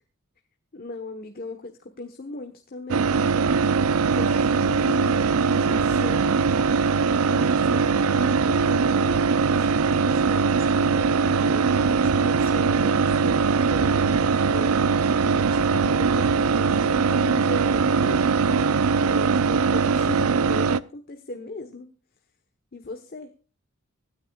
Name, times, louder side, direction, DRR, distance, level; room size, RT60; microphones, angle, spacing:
voice 1, 0.7-3.5 4.1-6.4 7.3-14.8 15.3-21.9 22.7-23.3, left 2 dB, 45° left, 6 dB, 1.2 m, -39 dB
sound 1, 2.9-20.8, right 5 dB, 85° right, 0.5 m, -21 dB
24.5 x 9.9 x 2.4 m, 0.34 s
head